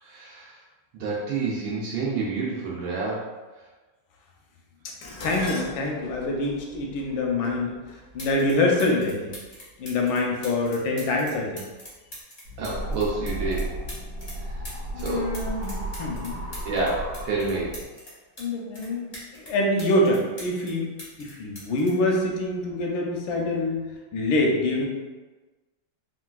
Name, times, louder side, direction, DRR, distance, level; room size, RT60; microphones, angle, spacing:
voice 1, 0.0-0.6 0.9-3.3 12.6-13.7 14.4-15.3 16.6-17.8, right 3 dB, 90° right, -5 dB, 1.4 m, -29 dB
Dishes pots and pans, 5.0-9.4 10.3-10.7 11.0-11.9 12.1-12.2, left 2 dB, 70° left, 0.9 m, -40 dB
voice 2, 5.2-7.8 8.1-9.3 9.8-11.6 14.9-16.4 18.4-19.1 19.3-20.9 21.2-23.8 24.1-24.9, left 2 dB, 90° left, 0 dB, 1.4 m, -25 dB
sound 1, 8.2-8.5 8.8-14.4 14.6-18.5 18.7-20.7 21.0-22.8 23.8-24.0, equal, 40° left, 0.5 m, -43 dB
sound 2, 12.4-17.8, right 1 dB, 50° right, 0.7 m, -34 dB
3.6 x 2.4 x 2.3 m, 1.3 s
omnidirectional pair, 2.1 m